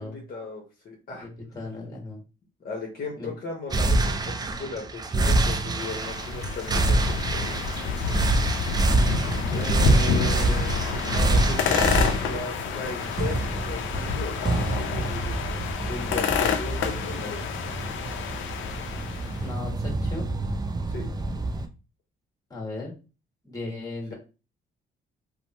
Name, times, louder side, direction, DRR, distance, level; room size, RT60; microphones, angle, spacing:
voice 1, 0.0-1.3 2.6-7.6 9.5-17.4 20.9-21.1, left 3 dB, 50° left, -1 dB, 0.9 m, -36 dB
voice 2, 1.2-2.2 3.2-3.3 19.4-20.3 22.5-22.9 23.4-24.1, left 2 dB, 15° left, -2 dB, 1.5 m, -36 dB
sound 1, 3.7-21.7, right 2 dB, 20° right, 0.3 m, -27 dB
sound 2, 5.4-19.5, left 5 dB, 80° left, 0.5 m, -29 dB
3.1 x 2.0 x 2.9 m, 0.32 s
cardioid pair, 90°, 20 cm